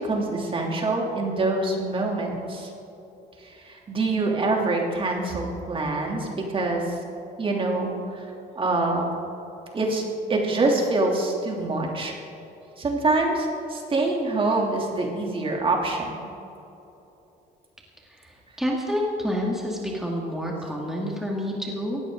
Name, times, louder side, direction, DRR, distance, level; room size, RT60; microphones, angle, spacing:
voice 1, 0.0-2.7 3.4-6.9 7.4-8.2 8.5-9.1 9.7-12.2 12.8-16.3, right 2 dB, 30° right, 0 dB, 3.0 m, -25 dB
voice 2, 18.1-22.0, equal, ahead, -2 dB, 2.4 m, -28 dB
18.5 x 15.0 x 3.9 m, 2.9 s
cardioid pair, 110°, 17 cm